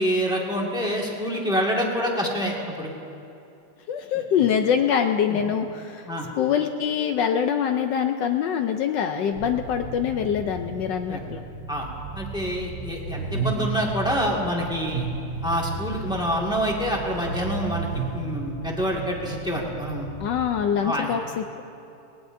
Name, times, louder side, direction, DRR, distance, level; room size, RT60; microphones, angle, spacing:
voice 1, 0.0-2.9 5.3-5.4 6.1-6.3 11.0-11.2 11.7-11.9 12.1-15.1 15.4-17.9 18.1-20.1 20.8-21.1, equal, ahead, -3 dB, 1.5 m, -26 dB
voice 2, 3.9-6.1 6.3-11.4 20.2-21.6, left 8 dB, 75° left, 6 dB, 1.0 m, -24 dB
sound 1, 9.3-20.5, right 3 dB, 80° right, 2.0 m, -38 dB
sound 2, 13.0-14.0 14.7-16.1 17.0-18.3, right 4 dB, 55° right, 2.2 m, -31 dB
19.5 x 19.5 x 2.6 m, 2.7 s
omnidirectional pair, 2.4 m